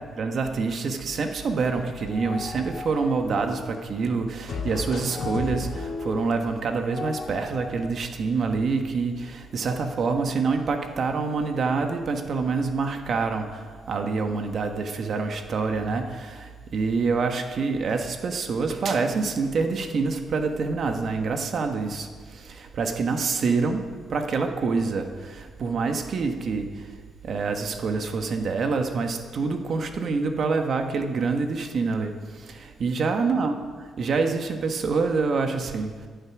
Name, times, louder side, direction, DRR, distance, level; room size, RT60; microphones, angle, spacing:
voice 1, 0.0-27.0 27.2-36.1, right 4 dB, 55° right, 5 dB, 1.3 m, -26 dB
sound 1, 1.8-3.9 4.5-7.9, left 3 dB, 55° left, 2.1 m, -35 dB
14.5 x 10.5 x 6.1 m, 1.5 s
cardioid pair, 95°, 0 cm